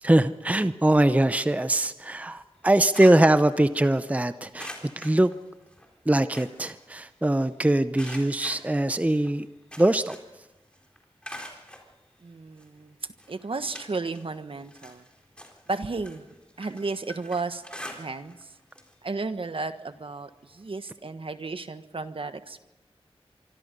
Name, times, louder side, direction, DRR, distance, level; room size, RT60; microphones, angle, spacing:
voice 1, 0.0-5.3 6.1-9.5 9.8-10.1, right 1 dB, 15° right, 12 dB, 0.7 m, -22 dB
sound 1, 2.5-4.1 4.6-5.9 6.1-7.5 7.9-10.4 10.7-11.9 12.6-12.7 13.2-14.3 14.6-18.4 18.7-18.9 19.3-19.4 20.6-20.7, equal, 10° left, 4.0 m, -44 dB
voice 2, 12.2-12.9 13.3-15.0 15.7-16.2 16.6-17.6 17.9-18.5 19.0-22.6, right 3 dB, 60° right, 10 dB, 1.4 m, -33 dB
25.5 x 25.0 x 5.4 m, 1.0 s
wide cardioid pair, 75°, 10 cm